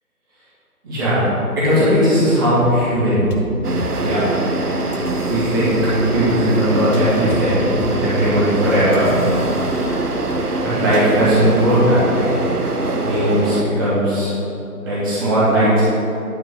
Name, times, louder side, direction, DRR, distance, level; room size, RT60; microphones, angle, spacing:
voice 1, 0.8-1.3 1.6-3.3 4.0-4.3 5.3-5.8 6.1-9.1 10.6-12.3 13.0-14.3 14.8-15.8, equal, 15° right, -11 dB, 1.8 m, -18 dB
sound 1, 3.3-11.4, left 1 dB, 75° left, 1.3 m, -31 dB
sound 2, 3.6-13.6, right 2 dB, 75° right, 0.9 m, -23 dB
10.5 x 4.3 x 5.4 m, 2.8 s
figure-of-eight pair, 155°, 46 cm